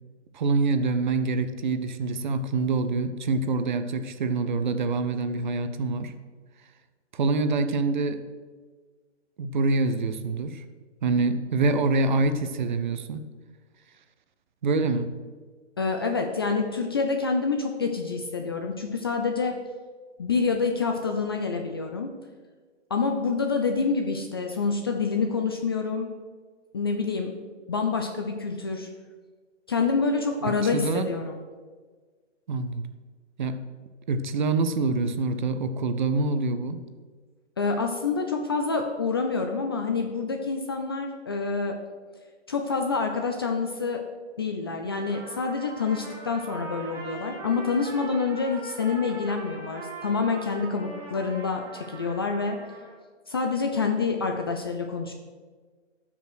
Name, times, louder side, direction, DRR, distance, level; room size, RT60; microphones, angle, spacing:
voice 1, 0.3-6.1 7.1-8.2 9.4-10.6 11.0-13.2 14.6-15.1 30.4-31.1 32.5-32.9 33.4-33.6 34.1-36.8, right 3 dB, 40° right, 9 dB, 0.8 m, -26 dB
voice 2, 15.8-19.6 20.2-22.1 22.9-26.1 26.7-27.3 27.7-28.9 29.7-31.4 37.6-41.8 42.5-44.0 44.4-52.6 53.3-55.1, left 4 dB, 20° left, 3 dB, 0.5 m, -27 dB
Trumpet, 45.1-53.0, right 3 dB, 5° right, 2.1 m, -41 dB
12.0 x 6.0 x 6.3 m, 1.5 s
figure-of-eight pair, 140°, 36 cm